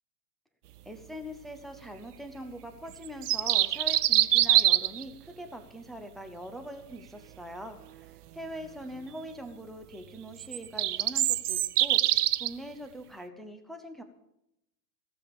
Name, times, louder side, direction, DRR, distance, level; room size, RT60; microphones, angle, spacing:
voice 1, 0.8-14.0, equal, ahead, 5 dB, 0.4 m, -43 dB
sound 1, 3.0-5.0 10.4-12.5, right 13 dB, 65° right, 0.6 m, -24 dB
15.5 x 7.0 x 8.1 m, 0.83 s
figure-of-eight pair, 105°, 49 cm